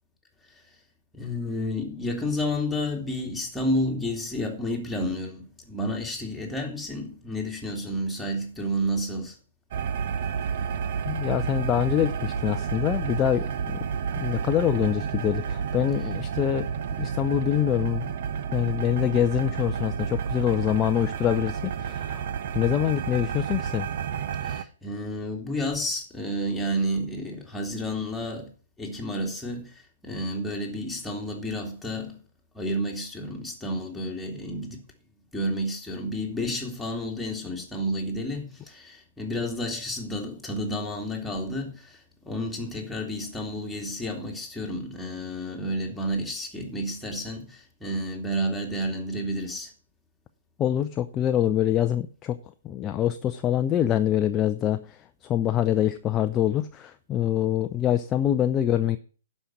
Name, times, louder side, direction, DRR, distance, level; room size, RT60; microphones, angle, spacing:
voice 1, 1.1-9.4 24.4-28.5 28.8-32.2 32.5-34.8 35.3-42.0 42.2-49.7, equal, 5° left, 2.6 m, -31 dB
sound 1, 9.7-24.6, right 7 dB, 50° right, 0.9 m, -30 dB
voice 2, 11.0-13.8 14.2-16.7 17.0-18.1 18.5-22.3 22.5-23.9 50.6-52.4 52.6-55.0 55.2-59.0, left 11 dB, 20° left, 0.6 m, -25 dB
11.5 x 5.5 x 7.3 m
figure-of-eight pair, 125°, 0 cm